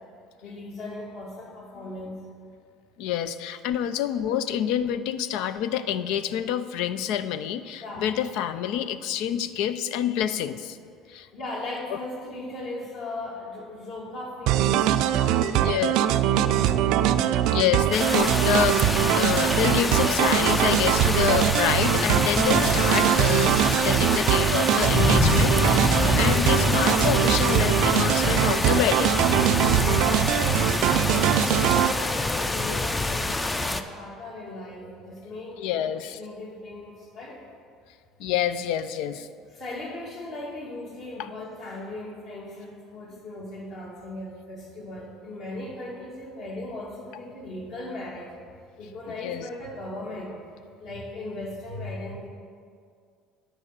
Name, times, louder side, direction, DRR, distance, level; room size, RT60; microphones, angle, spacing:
voice 1, 0.4-2.2 7.8-8.1 11.1-16.8 29.7-37.5 39.5-48.3 48.8-50.3 50.8-52.3, left 2 dB, 55° left, -2 dB, 2.4 m, -38 dB
voice 2, 3.0-10.8 11.1-11.3 15.5-16.0 17.5-29.1 35.6-36.2 38.2-39.3 41.2-41.3 49.2-49.5, left 10 dB, 75° left, 13 dB, 0.4 m, -27 dB
sound 1, 14.5-31.9, right 11 dB, 70° right, 0.4 m, -22 dB
sound 2, 17.9-33.8, left 2 dB, 15° left, 0.5 m, -26 dB
9.8 x 5.5 x 6.6 m, 2.2 s
cardioid pair, 115°, 0 cm